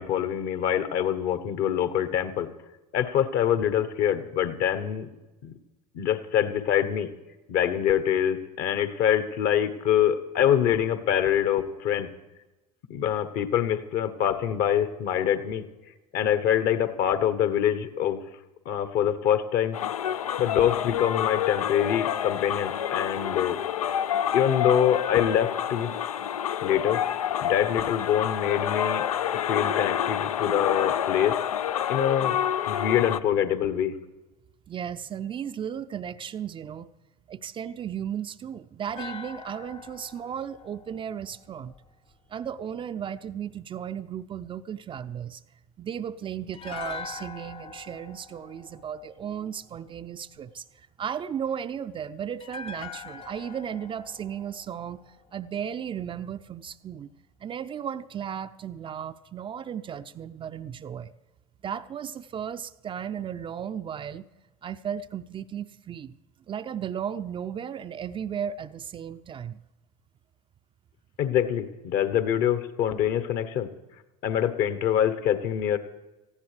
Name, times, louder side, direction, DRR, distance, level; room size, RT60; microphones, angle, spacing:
voice 1, 0.0-2.5 2.9-5.1 5.4-5.5 5.9-7.1 7.5-12.1 12.9-15.6 16.1-18.2 18.6-19.8 20.4-23.6 24.3-25.9 26.6-27.0 27.4-29.0 29.3-31.4 31.9-32.4 32.7-33.9 71.2-73.7 74.2-75.8, left 9 dB, 55° left, 12 dB, 1.1 m, -25 dB
sound 1, 19.7-33.2, left 10 dB, 80° left, 0.4 m, -28 dB
voice 2, 34.7-36.9 37.3-41.7 42.3-45.4 45.8-57.1 57.4-61.1 61.6-64.2 64.6-66.1 66.5-69.6, right 8 dB, 30° right, 11 dB, 0.5 m, -35 dB
sound 2, 38.9-42.1 46.5-49.7 52.4-55.6 55.9-56.0, left 6 dB, 30° left, 0.6 m, -43 dB
18.5 x 15.0 x 3.3 m, 1.1 s
figure-of-eight pair, 70°, 18 cm